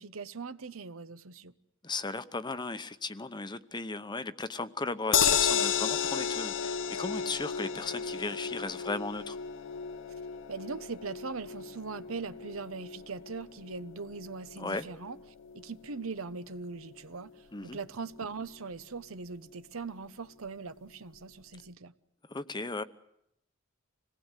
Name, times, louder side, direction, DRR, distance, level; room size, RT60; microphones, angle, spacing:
voice 1, 0.0-1.5 10.5-15.2 15.5-21.9, right 4 dB, 80° right, 1.0 m, -40 dB
voice 2, 1.8-9.4 14.6-14.9 17.5-17.8 22.3-22.8, left 3 dB, 20° left, 0.8 m, -36 dB
sound 1, 5.1-17.4 17.7-17.8 18.1-18.2, left 7 dB, 65° left, 0.9 m, -33 dB
26.5 x 19.0 x 8.2 m
head